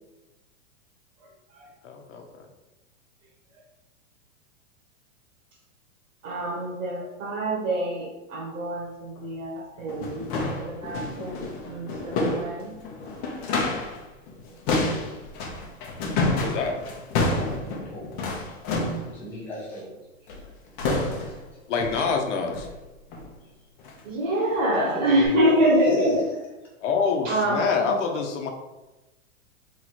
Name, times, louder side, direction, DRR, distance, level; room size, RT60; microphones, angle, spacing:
voice 1, 1.8-2.2 16.4-16.7 21.7-22.7 26.8-28.5, left 5 dB, 65° left, 3 dB, 1.0 m, -26 dB
voice 2, 6.2-12.9 13.4-13.7 21.2-21.3 24.0-26.3 27.2-28.0, right 1 dB, 85° right, -5 dB, 1.4 m, -26 dB
sound 1, 9.2-9.3 9.8-14.0 14.3-19.1 20.3-20.5 20.8-21.4 21.8-22.1 22.5-22.8 23.1-23.3 23.8-24.0 24.5-24.6 25.2-25.3, left 2 dB, 30° left, 0.7 m, -29 dB
voice 3, 17.3-18.1 19.1-19.9 24.7-25.5 25.9-26.2, left 1 dB, 5° left, -6 dB, 0.4 m, -34 dB
3.7 x 3.0 x 4.2 m, 1.0 s
supercardioid pair, 160°, 38 cm